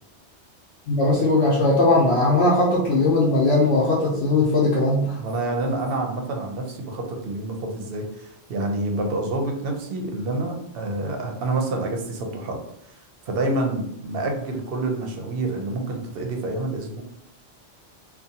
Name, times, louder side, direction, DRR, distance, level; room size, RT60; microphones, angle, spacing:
voice 1, 0.9-5.2, left 2 dB, 70° left, -5 dB, 0.8 m, -19 dB
voice 2, 5.2-12.6 12.9-13.0 13.3-17.0, right 2 dB, 60° right, 2 dB, 0.7 m, -28 dB
2.6 x 2.2 x 2.7 m, 0.75 s
omnidirectional pair, 1.2 m